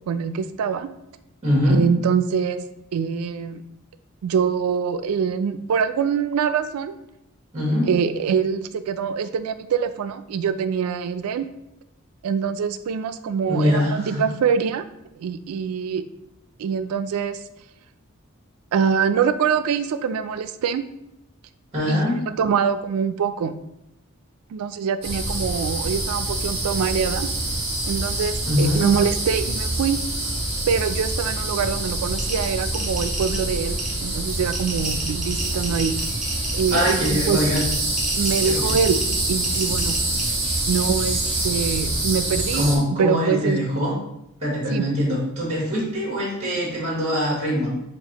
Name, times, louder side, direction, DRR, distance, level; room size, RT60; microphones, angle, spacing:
voice 1, 0.1-0.9 1.6-2.6 2.9-3.6 4.2-7.0 7.9-11.5 12.2-14.8 15.2-16.0 16.6-17.4 18.7-20.9 21.9-23.6 24.5-27.3 27.9-30.0 30.7-36.0 36.5-37.4 38.2-39.0 39.3-39.9 40.7-42.7 43.0-43.6 44.7-44.9, right 6 dB, 85° right, 11 dB, 0.3 m, -24 dB
voice 2, 1.4-1.8 7.5-7.9 13.5-14.2 21.7-22.2 28.5-28.8 36.7-37.6 38.5-38.6 42.5-44.0 44.4-47.7, equal, 30° right, -4 dB, 1.2 m, -22 dB
sound 1, 25.0-42.8, right 1 dB, 50° right, 1.5 m, -26 dB
sound 2, 32.2-40.2, right 2 dB, ahead, 0.7 m, -34 dB
5.9 x 2.5 x 2.9 m, 0.86 s
head